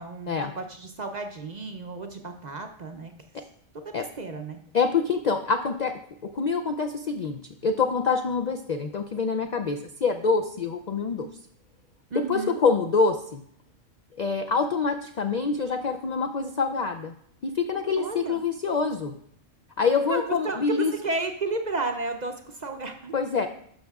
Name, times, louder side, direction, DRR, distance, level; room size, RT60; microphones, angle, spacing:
voice 1, 0.0-3.1 3.7-4.6 12.1-12.6 18.0-18.4 19.8-23.1, right 3 dB, 45° right, 6 dB, 0.6 m, -33 dB
voice 2, 4.7-5.9 6.3-11.3 12.3-13.4 14.2-17.1 17.4-19.1 19.8-20.9 23.1-23.5, left 5 dB, 60° left, 6 dB, 0.4 m, -26 dB
12.5 x 6.3 x 2.3 m, 0.70 s
omnidirectional pair, 1.3 m